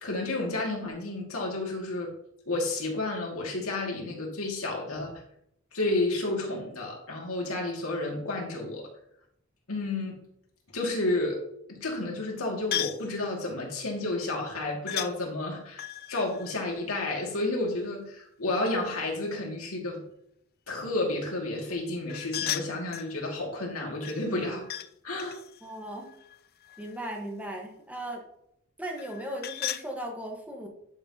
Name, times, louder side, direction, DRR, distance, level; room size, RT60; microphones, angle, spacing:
voice 1, 0.0-2.1 2.5-5.1 5.7-8.9 9.7-10.2 10.7-11.4 11.8-20.0 20.7-24.6 25.0-25.4, left 2 dB, 85° left, -1 dB, 2.3 m, -31 dB
sound 1, 12.7-13.1 14.9-15.1 15.7-17.6 22.1-23.1 24.0-24.9 25.2-27.1 28.9-29.9, left 12 dB, 45° left, 0.4 m, -36 dB
voice 2, 25.6-26.1 26.8-28.2 28.8-30.7, right 1 dB, 5° right, 0 dB, 1.3 m, -37 dB
10.5 x 5.8 x 2.9 m, 0.73 s
head